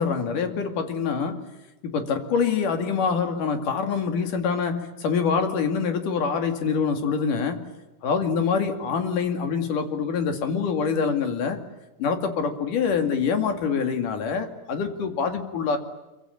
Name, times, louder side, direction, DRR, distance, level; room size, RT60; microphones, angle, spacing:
voice 1, 0.0-1.5 1.8-7.7 8.0-11.6 12.0-15.8, left 6 dB, 80° left, 6 dB, 3.9 m, -25 dB
25.0 x 24.0 x 9.1 m, 1.1 s
omnidirectional pair, 3.7 m